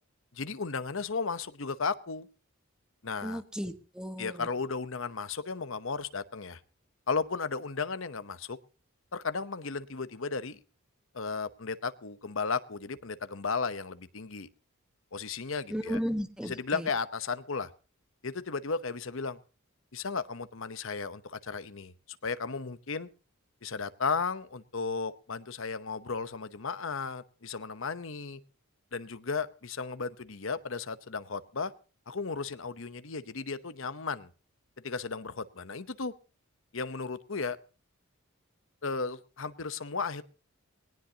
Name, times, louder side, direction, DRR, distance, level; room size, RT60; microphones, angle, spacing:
voice 1, 0.3-2.3 3.0-3.4 4.2-6.6 7.1-8.6 9.1-10.6 11.1-14.5 15.1-16.0 16.4-17.7 18.2-19.4 19.9-21.9 22.2-23.1 23.6-28.4 28.9-31.7 32.1-34.3 34.8-36.1 36.7-37.6 38.8-40.2, left 4 dB, 65° left, 13 dB, 0.9 m, -34 dB
voice 2, 3.2-4.5 15.7-16.9, equal, 5° right, 8 dB, 1.3 m, -35 dB
20.0 x 18.5 x 2.9 m, 0.35 s
head